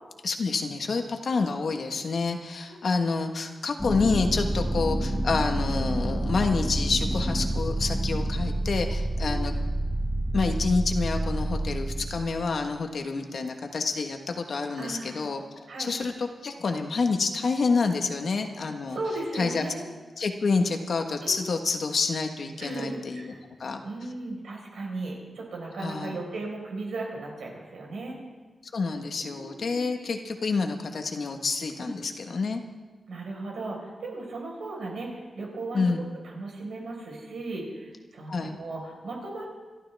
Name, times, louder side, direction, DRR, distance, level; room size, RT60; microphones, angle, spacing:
voice 1, 0.2-9.5 10.3-19.0 19.3-19.7 20.2-23.3 23.6-23.8 25.8-26.2 28.7-32.6 35.7-36.1 38.3-38.6, left 4 dB, 60° left, 4 dB, 1.4 m, -28 dB
sound 1, 3.8-12.5, right 1 dB, 10° left, 1.8 m, -28 dB
voice 2, 14.8-15.3 15.7-15.9 18.9-19.9 21.2-21.4 22.6-23.4 23.8-28.2 29.2-29.9 31.8-31.9 33.1-35.9 36.2-39.5, right 2 dB, 85° right, -1 dB, 4.7 m, -36 dB
27.5 x 12.5 x 3.5 m, 1.3 s
wide cardioid pair, 140°, 0 cm